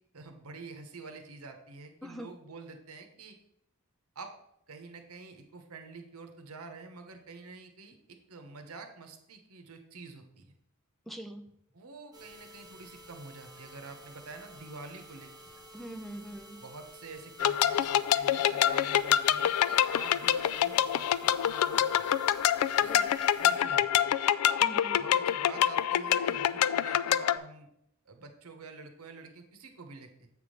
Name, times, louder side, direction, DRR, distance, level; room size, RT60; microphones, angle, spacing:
voice 1, 0.1-3.4 4.1-4.3 4.7-10.5 11.7-15.5 16.6-22.2 22.8-23.1 23.4-24.2 25.0-27.7 28.1-30.3, right 3 dB, 80° right, 5 dB, 1.1 m, -47 dB
voice 2, 2.0-2.3 11.1-11.5 15.7-16.6 22.8-23.1 24.6-25.0, right 1 dB, ahead, 7 dB, 0.4 m, -43 dB
sound 1, 12.1-23.6 24.1-24.2 24.6-24.7 25.1-25.2, equal, 15° right, 1.2 m, -52 dB
sound 2, 17.4-27.4, left 10 dB, 80° left, 0.3 m, -26 dB
8.0 x 3.6 x 6.5 m, 0.76 s
head